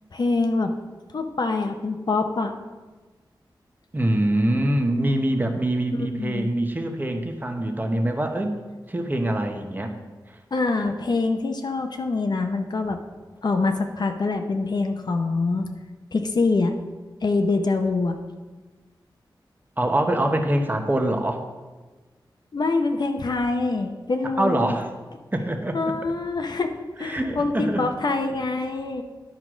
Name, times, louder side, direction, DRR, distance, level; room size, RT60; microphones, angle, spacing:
voice 1, 0.1-0.7 1.1-2.5 6.2-6.5 10.5-13.0 13.4-15.7 16.1-16.7 17.2-18.2 22.5-24.8 25.7-26.7 27.0-29.0, left 3 dB, 60° left, 5 dB, 0.7 m, -24 dB
voice 2, 3.9-8.5 8.9-9.9 10.3-10.4 19.8-21.4 24.4-24.9 25.3-26.0 27.0-27.8, right 1 dB, 25° right, 5 dB, 1.0 m, -24 dB
10.5 x 4.7 x 6.2 m, 1.3 s
wide cardioid pair, 90°, 8 cm